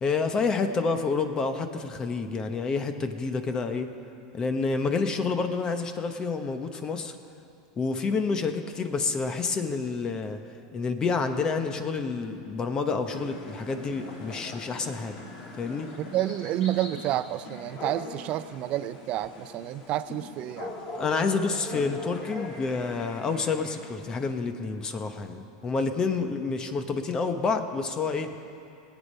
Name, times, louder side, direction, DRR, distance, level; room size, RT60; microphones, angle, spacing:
voice 1, 0.0-3.9 4.3-7.1 7.8-10.4 10.7-15.1 15.6-15.9 20.9-28.3, left 4 dB, 30° left, 7 dB, 1.0 m, -28 dB
sound 1, 13.1-24.3, left 2 dB, 45° left, 2.8 m, -41 dB
voice 2, 16.0-20.8, right 13 dB, 45° right, 14 dB, 0.5 m, -30 dB
19.5 x 8.4 x 5.5 m, 2.6 s
hypercardioid pair, 105°, 3 cm